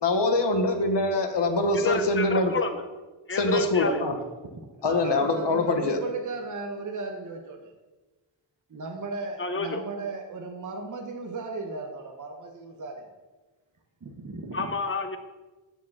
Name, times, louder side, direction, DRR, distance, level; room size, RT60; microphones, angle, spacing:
voice 1, 0.0-2.5 3.3-4.1 4.8-6.0, left 2 dB, 60° left, 5 dB, 1.2 m, -24 dB
voice 2, 1.7-2.8 3.3-4.0 4.9-5.0 9.4-9.8 14.5-15.2, left 3 dB, 25° left, 8 dB, 0.8 m, -29 dB
voice 3, 4.8-7.7 8.7-13.1 14.0-14.7, right 3 dB, 40° right, 1 dB, 1.0 m, -36 dB
9.1 x 4.7 x 7.2 m, 1.2 s
wide cardioid pair, 160°, 47 cm